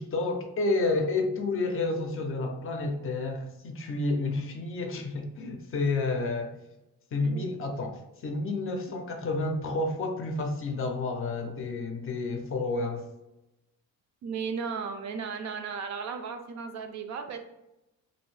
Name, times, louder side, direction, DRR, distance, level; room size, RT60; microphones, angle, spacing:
voice 1, 0.0-6.6 7.1-13.0, left 3 dB, 40° left, 4 dB, 0.5 m, -30 dB
voice 2, 7.1-7.5 14.2-17.4, right 6 dB, 55° right, 6 dB, 0.5 m, -35 dB
2.6 x 2.6 x 3.1 m, 0.94 s
cardioid pair, 150°, 34 cm